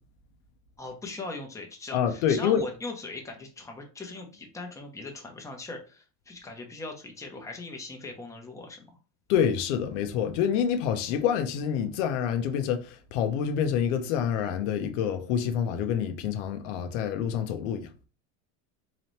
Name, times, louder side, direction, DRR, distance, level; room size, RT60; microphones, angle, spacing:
voice 1, 0.8-8.9, left 3 dB, 10° left, 0.8 m, -40 dB
voice 2, 1.9-2.6 9.3-17.9, left 8 dB, 85° left, 0.7 m, -27 dB
4.0 x 2.9 x 3.2 m
supercardioid pair, 130°, 35 cm